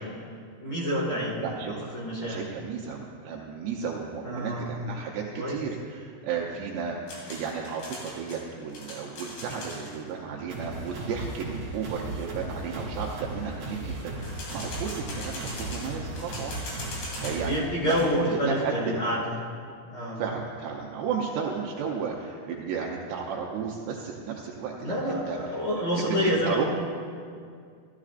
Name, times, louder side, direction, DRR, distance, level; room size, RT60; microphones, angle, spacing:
voice 1, 0.6-1.4 1.7-2.4 4.2-4.7 5.3-5.6 17.4-19.2 19.9-20.2 24.8-26.6, equal, 40° left, -4 dB, 1.6 m, -28 dB
voice 2, 1.4-1.7 2.2-7.0 7.3-16.6 16.9-18.7 20.2-25.6 26.0-26.6, right 6 dB, 85° right, -2 dB, 2.8 m, -34 dB
sound 1, 7.1-10.0 14.2-17.5 17.7-18.0, left 2 dB, 75° left, 4.4 m, -40 dB
sound 2, 10.5-17.6, right 2 dB, 50° right, 3.0 m, -36 dB
14.5 x 13.0 x 2.5 m, 2.2 s
omnidirectional pair, 4.8 m